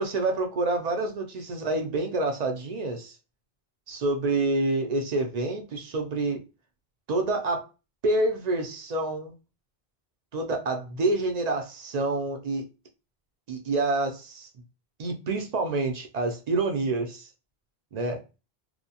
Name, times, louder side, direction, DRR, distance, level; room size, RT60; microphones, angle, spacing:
voice 1, 0.0-3.2 3.9-6.4 7.1-7.7 8.0-9.3 10.3-12.6 13.5-14.5 15.0-17.3 17.9-18.2, right 2 dB, 55° right, 0.5 m, -27 dB
2.7 x 2.1 x 2.7 m
omnidirectional pair, 1.1 m